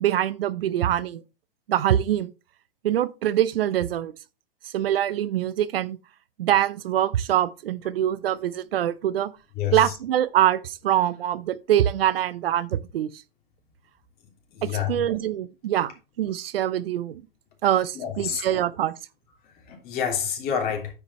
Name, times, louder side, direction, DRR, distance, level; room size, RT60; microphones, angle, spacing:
voice 1, 0.0-1.2 1.7-2.3 2.8-4.1 4.7-6.0 6.4-9.3 9.7-13.1 14.6-17.2 17.6-18.9, right 11 dB, 80° right, 0.7 m, -24 dB
voice 2, 9.6-9.9 14.5-14.9 17.9-18.4 19.7-20.9, left 8 dB, 30° left, 3.2 m, -28 dB
9.6 x 5.1 x 4.2 m
hypercardioid pair, 135°, 29 cm